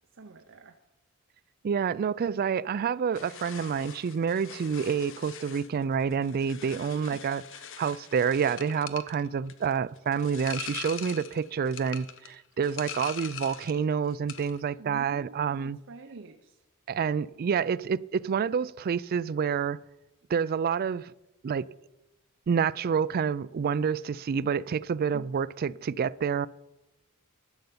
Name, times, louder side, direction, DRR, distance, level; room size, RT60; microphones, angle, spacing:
voice 1, 0.1-0.8 6.7-7.2 14.8-16.6 25.1-25.3, right 3 dB, 60° right, 0.8 m, -47 dB
voice 2, 1.6-7.4 7.8-15.8 16.9-19.8 20.3-21.1 21.4-21.7 22.5-26.5, right 6 dB, 45° right, 0.3 m, -28 dB
sound 1, 3.1-13.8 14.1-14.6, left 8 dB, 60° left, 0.8 m, -43 dB
11.5 x 6.8 x 8.6 m
head